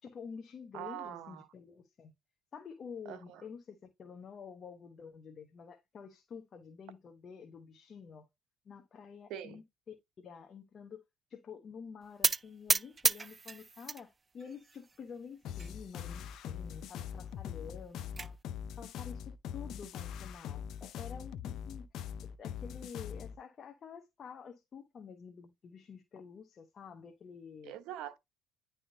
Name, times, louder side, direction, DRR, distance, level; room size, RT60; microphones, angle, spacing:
voice 1, 0.0-2.1 2.5-8.3 8.6-11.0 11.3-18.4 18.8-21.9 22.2-27.7, left 6 dB, 45° left, 1.0 m, -49 dB
voice 2, 0.7-1.5 3.1-3.4 9.3-9.6 27.6-28.2, right 11 dB, 75° right, 1.1 m, -43 dB
sound 1, 12.2-14.0 14.4-15.0 15.6-15.7 16.0-16.1 16.4-16.5 17.6-18.3, right 4 dB, 30° right, 0.3 m, -32 dB
sound 2, 15.4-23.4, left 9 dB, 70° left, 0.5 m, -42 dB
10.0 x 3.6 x 2.7 m
supercardioid pair, 80°, 0 cm